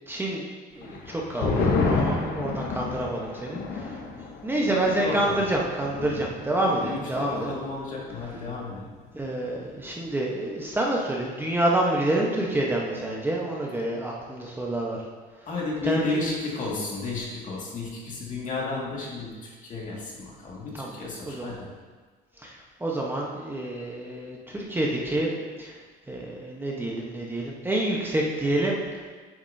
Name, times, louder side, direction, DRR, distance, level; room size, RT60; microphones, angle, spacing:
voice 1, 0.1-0.4 0.7-4.0 4.4-7.5 9.1-15.0 15.8-16.0 20.8-21.0 21.3-21.5 22.4-25.3 25.6-25.8 26.1-28.8, right 1 dB, 10° right, -2 dB, 1.0 m, -28 dB
sound 1, 0.8-7.7 8.0-8.1 8.5-9.0, left 4 dB, 70° left, 1.1 m, -30 dB
voice 2, 4.8-5.4 6.8-8.8 15.5-21.7, left 3 dB, 50° left, -3 dB, 2.0 m, -32 dB
8.6 x 6.9 x 2.7 m, 1.4 s
cardioid pair, 110°, 17 cm